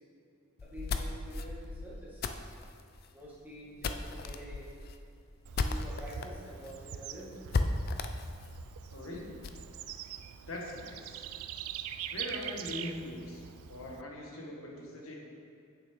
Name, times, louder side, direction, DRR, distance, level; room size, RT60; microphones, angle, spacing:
sound 1, 0.6-6.3 6.6-6.7 7.0-7.1 7.5-9.6, left 3 dB, 45° left, 0.4 m, -36 dB
voice 1, 0.6-2.2 3.1-4.7 5.6-7.4, equal, 10° right, -8 dB, 1.6 m, -47 dB
Bird / Insect, 5.5-14.0, right 10 dB, 85° right, 0.4 m, -44 dB
voice 2, 8.9-9.3 10.5-11.2 12.1-15.2, left 1 dB, 75° left, -1 dB, 1.2 m, -42 dB
8.8 x 6.6 x 3.5 m, 2.5 s
head